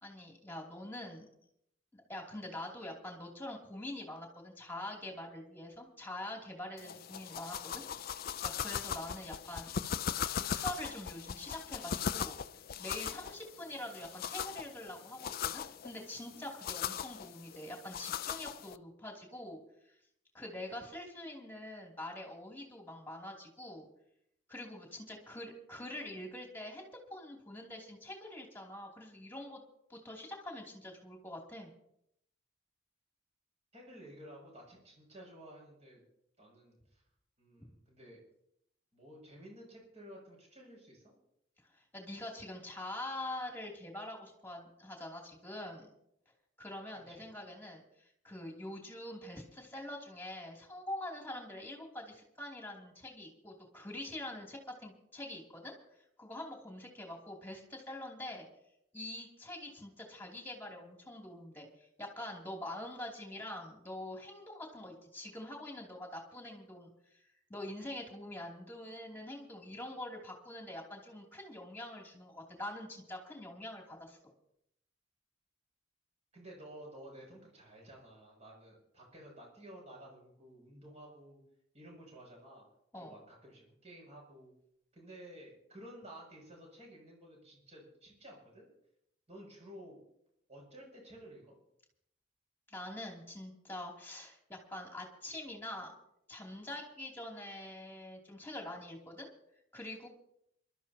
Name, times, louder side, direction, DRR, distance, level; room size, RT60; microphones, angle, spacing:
voice 1, 0.0-1.3 1.9-7.8 8.1-9.7 10.3-12.4 12.8-19.6 19.8-20.0 20.3-23.9 24.5-29.6 29.9-31.7 41.7-45.9 46.6-58.5 58.9-74.2 82.9-83.1 92.7-95.9 96.3-99.3 99.7-100.1, left 1 dB, 10° left, 1 dB, 2.8 m, -45 dB
sound 1, 6.8-18.8, left 8 dB, 50° left, 0.4 m, -39 dB
voice 2, 33.7-36.0 36.4-37.0 37.4-38.2 38.9-41.1 46.9-47.3 76.3-81.4 81.7-82.6 83.0-84.5 84.9-88.7 89.3-90.0 90.5-91.6, right 1 dB, 35° right, -2 dB, 7.0 m, -53 dB
27.0 x 12.5 x 2.9 m, 0.76 s
head